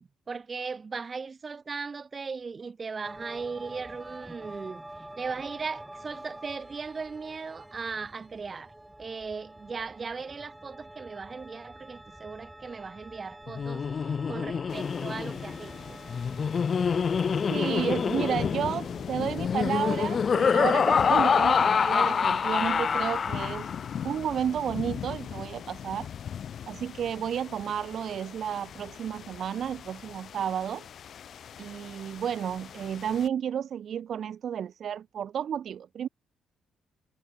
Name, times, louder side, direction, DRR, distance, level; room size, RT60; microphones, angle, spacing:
voice 1, 0.0-4.8 5.2-8.7 9.0-16.0, right 5 dB, 35° right, 1.1 m, -38 dB
sound 1, 3.0-20.0, right 1 dB, 10° right, 5.9 m, -47 dB
Laughter, 13.5-23.9, left 6 dB, 45° left, 0.4 m, -26 dB
sound 2, 14.7-33.3, left 8 dB, 60° left, 1.5 m, -40 dB
voice 2, 17.5-23.7 24.0-26.1 26.7-30.9 31.6-36.1, right 9 dB, 60° right, 0.4 m, -32 dB
cardioid pair, 90°, 0 cm